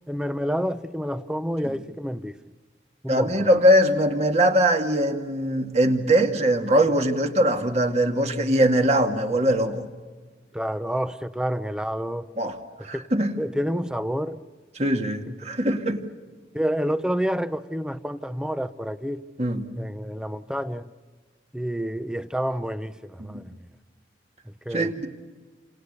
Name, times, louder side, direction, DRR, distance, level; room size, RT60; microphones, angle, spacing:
voice 1, 0.1-2.4 3.0-3.5 10.5-12.3 12.9-13.1 13.4-14.4 16.5-19.2 19.8-20.9 21.5-23.5 24.7-25.1, equal, 5° right, 0.7 m, -29 dB
voice 2, 3.1-9.8 12.4-13.3 14.8-16.0 19.4-19.7 23.2-23.4 24.7-25.1, right 1 dB, 35° right, 2.2 m, -21 dB
29.5 x 26.5 x 6.8 m
head